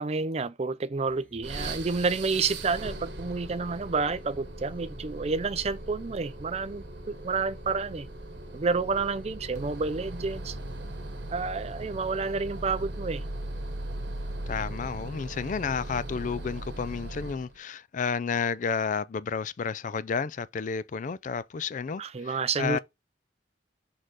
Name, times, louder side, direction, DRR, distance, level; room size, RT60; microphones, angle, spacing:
voice 1, 0.0-8.1 8.5-10.6 11.3-13.3 22.0-22.8, right 4 dB, 35° right, 0.5 m, -29 dB
sound 1, 1.1-17.1, left 1 dB, 10° left, 1.1 m, -53 dB
sound 2, 1.4-17.6, right 2 dB, 85° right, 1.1 m, -39 dB
sound 3, 1.5-16.6, left 1 dB, 30° left, 1.2 m, -54 dB
voice 2, 14.5-22.8, left 6 dB, 45° left, 0.4 m, -31 dB
6.5 x 3.8 x 4.7 m
head